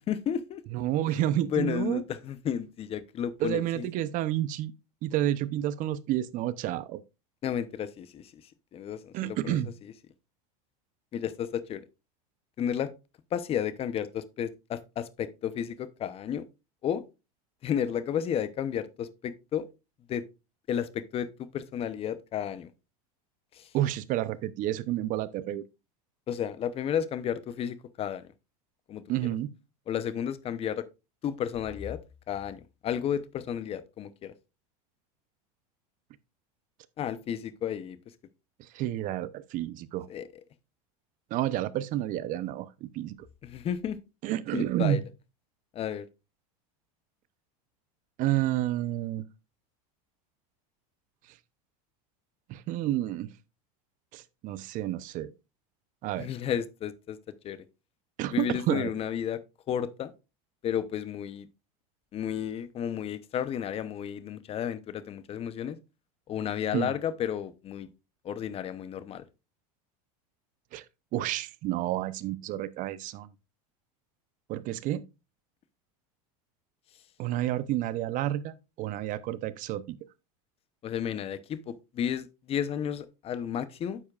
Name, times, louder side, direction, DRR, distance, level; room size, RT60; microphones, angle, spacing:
voice 1, 0.1-0.6 1.5-3.9 7.4-8.3 8.7-9.6 11.1-11.8 12.6-12.9 13.3-16.4 16.8-17.0 17.6-19.7 20.1-20.3 20.7-22.7 23.5-23.7 26.3-28.3 28.9-29.0 29.9-30.8 31.2-32.0 32.3-34.3 37.0-38.0 40.1-40.3 43.4-44.0 44.5-45.0 45.7-46.1 56.2-57.2 57.4-57.6 58.3-59.4 59.7-60.1 60.6-61.5 62.1-65.8 66.3-67.9 68.2-69.2 80.8-84.0, left 9 dB, 30° left, 0.8 m, -32 dB
voice 2, 0.7-2.0 3.4-4.7 5.0-7.0 9.1-9.7 23.7-25.6 29.1-29.5 38.6-40.1 41.3-43.2 44.2-45.0 48.2-49.2 52.5-53.3 54.1-55.3 56.0-56.3 58.2-58.9 66.7-66.9 70.7-70.8 71.1-73.3 74.5-75.0 77.2-80.0, right 13 dB, 45° right, 0.7 m, -30 dB
9.8 x 7.1 x 2.4 m
supercardioid pair, 125°, 19 cm